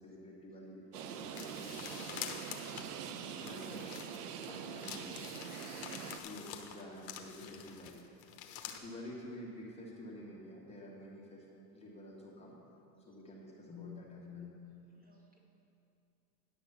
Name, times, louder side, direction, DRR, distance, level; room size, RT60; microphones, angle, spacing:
voice 1, 0.0-2.0 3.3-3.9 4.4-5.3 6.0-8.0 8.6-11.5 11.7-12.6 13.0-14.6, left 1 dB, 15° left, -4 dB, 1.9 m, -49 dB
sound 1, 0.9-6.2, right 7 dB, 75° right, 0.8 m, -44 dB
sound 2, 1.4-4.5 4.8-8.8, left 9 dB, 50° left, 1.1 m, -47 dB
voice 2, 14.9-15.4, right 1 dB, 20° right, -3 dB, 2.5 m, -74 dB
10.0 x 5.9 x 6.9 m, 2.7 s
hypercardioid pair, 95°, 48 cm